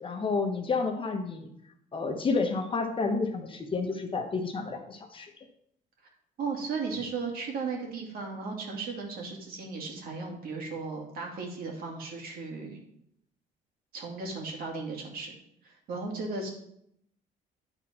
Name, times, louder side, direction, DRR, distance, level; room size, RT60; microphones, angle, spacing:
voice 1, 0.0-1.5 1.9-5.3, left 4 dB, 30° left, 4 dB, 1.0 m, -30 dB
voice 2, 6.4-12.8 13.9-15.4 15.6-16.5, right 4 dB, 60° right, 1 dB, 2.3 m, -36 dB
9.9 x 4.3 x 4.3 m, 0.73 s
cardioid pair, 110°, 17 cm